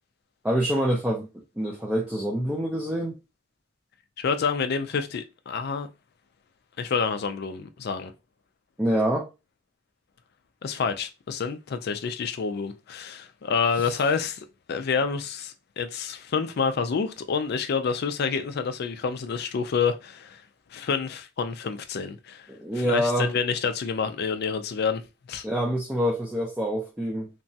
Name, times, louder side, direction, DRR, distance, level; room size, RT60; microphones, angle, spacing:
voice 1, 0.4-1.3 1.6-3.2 8.8-9.3 22.5-23.3 25.4-27.3, equal, 5° right, 0.5 m, -26 dB
voice 2, 4.2-5.9 6.8-8.1 10.6-20.4 20.7-22.5 22.7-25.0 25.3-25.4, left 5 dB, 55° left, 0.4 m, -28 dB
2.9 x 2.3 x 2.7 m
head